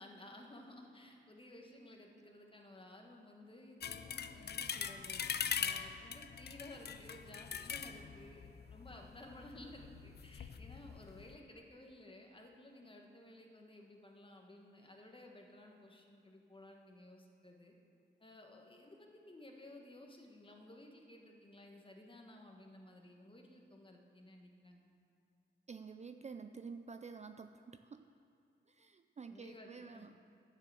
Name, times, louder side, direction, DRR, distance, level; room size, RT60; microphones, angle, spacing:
voice 1, 0.0-17.7 18.2-24.9 29.3-30.1, left 1 dB, 25° left, 2 dB, 1.4 m, -56 dB
sound 1, 3.8-11.4, left 7 dB, 55° left, 0.5 m, -42 dB
voice 2, 25.7-28.1 28.7-30.2, right 5 dB, 35° right, 8 dB, 0.4 m, -50 dB
9.9 x 6.7 x 7.5 m, 2.4 s
wide cardioid pair, 85°, 20 cm